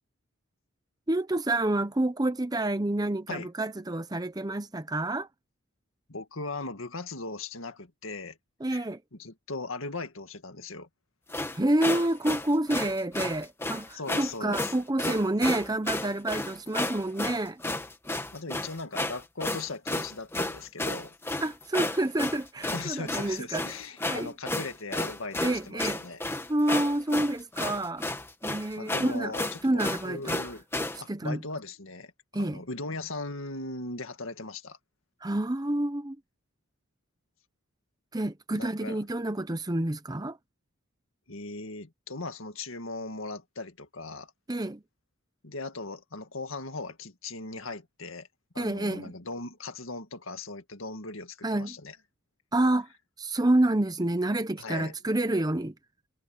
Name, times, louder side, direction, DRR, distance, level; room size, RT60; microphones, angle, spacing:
voice 1, 1.1-5.3 8.6-9.0 11.5-17.6 21.4-23.7 24.1-24.3 25.4-26.0 26.5-28.1 28.4-29.3 29.6-30.4 31.1-31.4 32.3-32.6 35.2-36.2 38.1-40.4 44.5-44.8 48.6-49.1 51.4-51.8 52.5-52.9 53.2-55.7, right 1 dB, 20° right, 0.8 m, -28 dB
voice 2, 6.1-8.4 8.7-8.9 9.1-10.9 13.9-14.7 18.3-21.1 22.7-26.2 28.8-30.6 31.0-34.8 38.5-39.0 41.3-44.3 45.4-48.3 48.5-52.0 54.6-54.9, left 3 dB, 75° left, 1.9 m, -38 dB
sound 1, 11.3-31.0, left 2 dB, 10° left, 1.8 m, -32 dB
head